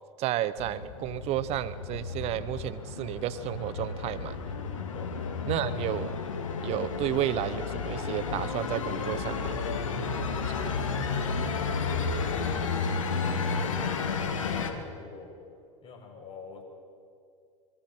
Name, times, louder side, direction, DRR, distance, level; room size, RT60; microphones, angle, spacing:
voice 1, 0.2-4.4 5.5-6.1 6.6-9.6, right 13 dB, 40° right, 15 dB, 0.9 m, -32 dB
sound 1, 0.6-14.7, left 5 dB, 70° left, 2.1 m, -32 dB
voice 2, 9.9-11.7 12.4-15.4 15.8-16.6, left 4 dB, 35° left, -1 dB, 6.4 m, -46 dB
25.5 x 22.5 x 4.5 m, 2.4 s
figure-of-eight pair, 85°, 17 cm